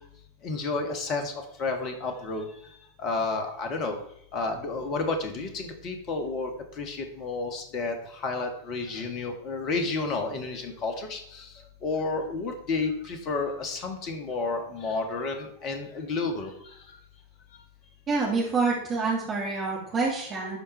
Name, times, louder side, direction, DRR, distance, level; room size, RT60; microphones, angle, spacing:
voice 1, 0.4-2.5 3.0-4.0 4.3-11.5 11.8-16.5, left 3 dB, 35° left, 6 dB, 1.8 m, -31 dB
voice 2, 18.1-20.6, right 4 dB, 25° right, -4 dB, 2.2 m, -27 dB
12.0 x 4.4 x 4.5 m, 0.74 s
figure-of-eight pair, 90°, 0 cm